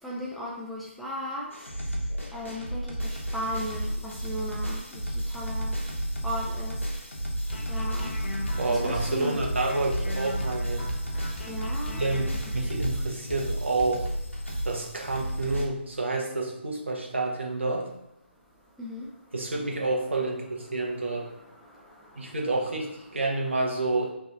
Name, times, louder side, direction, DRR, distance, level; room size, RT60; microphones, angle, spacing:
voice 1, 0.0-1.7 2.3-5.8 6.2-6.9 7.7-8.3 8.7-9.4 11.5-12.0 18.6-19.3 20.7-22.4, equal, ahead, -6 dB, 0.4 m, -37 dB
sound 1, 1.5-15.7, right 1 dB, 90° left, 1.0 m, -32 dB
sound 2, 7.5-13.0 13.3-13.5 13.8-13.9, left 1 dB, 55° left, 0.8 m, -39 dB
voice 2, 8.6-10.9 11.9-14.1 14.6-17.9 19.3-21.3 22.2-24.1, right 2 dB, 70° right, -1 dB, 1.0 m, -29 dB
3.3 x 2.5 x 3.8 m, 0.89 s
figure-of-eight pair, 140°, 7 cm